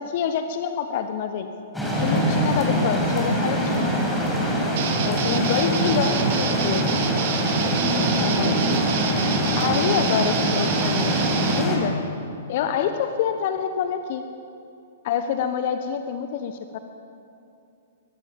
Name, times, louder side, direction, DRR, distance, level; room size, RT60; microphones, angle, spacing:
voice 1, 0.0-1.5 2.0-4.0 5.0-6.9 8.2-8.7 9.5-12.0 12.5-14.3 15.0-16.8, left 8 dB, 50° left, 8 dB, 1.4 m, -27 dB
sound 1, 1.7-11.8, equal, 5° left, 5.9 m, -23 dB
sound 2, 4.8-11.6, right 7 dB, 50° right, 2.3 m, -27 dB
23.5 x 20.5 x 8.0 m, 2.6 s
figure-of-eight pair, 110°, 0 cm